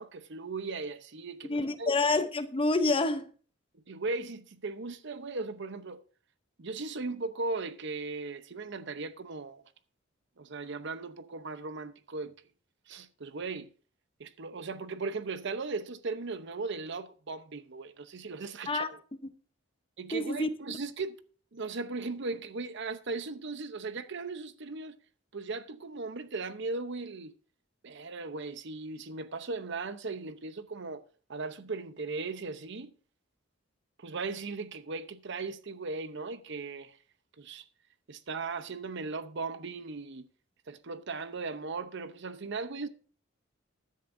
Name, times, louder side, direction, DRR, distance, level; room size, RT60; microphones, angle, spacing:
voice 1, 0.0-1.5 1.8-2.0 3.7-6.0 6.6-9.6 10.4-12.3 12.9-13.7 14.2-19.0 20.0-21.2 21.5-25.0 25.3-27.3 27.8-31.0 31.3-32.9 34.0-37.0 37.4-37.7 38.1-40.3 40.7-42.9, right 3 dB, 65° right, 0.8 m, -37 dB
voice 2, 1.4-3.3 18.7-18.9 20.1-20.5, left 3 dB, 25° left, 0.8 m, -27 dB
14.0 x 10.5 x 2.7 m
head